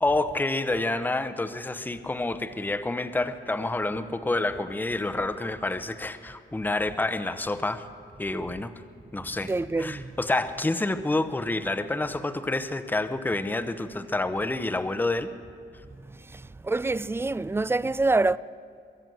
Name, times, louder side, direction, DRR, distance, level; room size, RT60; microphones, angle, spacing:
voice 1, 0.0-7.9 8.2-8.7 9.1-9.5 9.8-15.3, left 2 dB, 10° left, 0.8 m, -28 dB
voice 2, 9.4-10.1 16.3-18.4, right 3 dB, 10° right, 0.3 m, -26 dB
23.0 x 7.7 x 7.7 m
cardioid pair, 90°, 20 cm